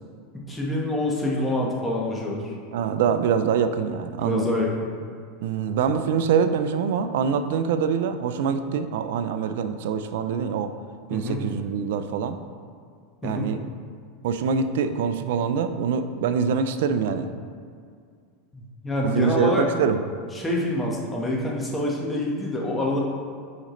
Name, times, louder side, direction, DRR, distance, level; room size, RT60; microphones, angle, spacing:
voice 1, 0.3-2.5 4.2-4.9 11.1-11.4 13.2-13.5 18.5-19.7 20.3-23.0, left 1 dB, 10° left, -3 dB, 1.4 m, -26 dB
voice 2, 2.7-4.5 5.4-10.7 11.1-12.4 13.2-13.6 14.2-17.3 19.0-20.0, right 6 dB, 75° right, 10 dB, 0.4 m, -24 dB
7.9 x 5.0 x 3.2 m, 2.2 s
hypercardioid pair, 110°, 0 cm